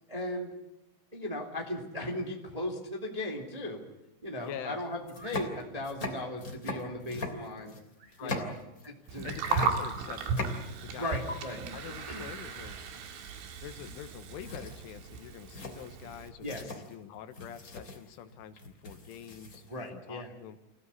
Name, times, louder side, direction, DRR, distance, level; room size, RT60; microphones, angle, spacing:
voice 1, 0.1-0.5 1.1-3.8 4.2-7.7 8.2-8.5 8.8-9.3 11.0-11.6 12.1-12.3 16.4-16.6 19.7-20.3, left 1 dB, 10° right, 2 dB, 1.7 m, -37 dB
sound 1, 4.3-4.4 5.0-9.1 9.3-11.0 11.3-11.4 13.9-14.1 14.4-19.8, left 2 dB, 20° left, 2.8 m, -40 dB
voice 2, 4.4-4.8 8.2-8.4 9.2-10.5 10.8-12.8 13.6-20.6, left 10 dB, 80° left, 9 dB, 3.7 m, -45 dB
sound 2, 5.0-5.5 8.0-8.2 8.7-8.8 9.2-9.9 12.6-12.9 13.3-13.5, right 2 dB, 50° right, 6.7 m, -51 dB
Gurgling, 9.1-16.3, right 5 dB, 70° right, 4.4 m, -36 dB
28.0 x 17.0 x 9.9 m, 0.94 s
omnidirectional pair, 5.6 m